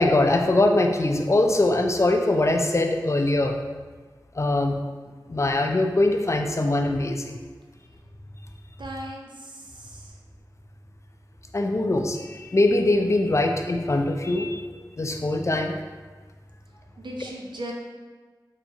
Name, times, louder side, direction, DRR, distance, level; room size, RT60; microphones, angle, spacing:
voice 1, 0.0-3.6 4.4-4.8 5.3-7.4 11.5-14.6 15.0-15.8, left 2 dB, 40° left, 4 dB, 0.4 m, -22 dB
voice 2, 8.8-10.1 17.0-17.7, right 1 dB, 80° right, -1 dB, 0.5 m, -37 dB
4.3 x 2.8 x 2.7 m, 1.4 s
wide cardioid pair, 50°, 8 cm